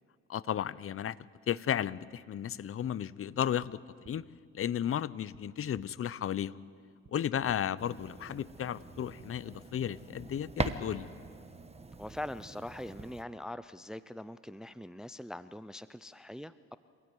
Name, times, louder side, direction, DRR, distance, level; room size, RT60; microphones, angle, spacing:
voice 1, 0.3-1.2 1.5-3.8 4.1-4.2 4.5-6.6 7.1-11.1, left 9 dB, 45° left, 18 dB, 0.7 m, -34 dB
sound 1, 3.6-3.7 4.0-4.2 5.3-5.4 5.7-5.9 7.0-7.1 7.5-7.6 8.8-8.9 9.2-9.3 10.5-10.6, right 7 dB, 50° right, 2.0 m, -55 dB
sound 2, 7.8-13.2, right 3 dB, 20° right, 1.2 m, -41 dB
voice 2, 12.0-16.8, left 1 dB, ahead, 13 dB, 0.6 m, -43 dB
26.5 x 16.5 x 9.6 m, 2.2 s
cardioid pair, 90°, 30 cm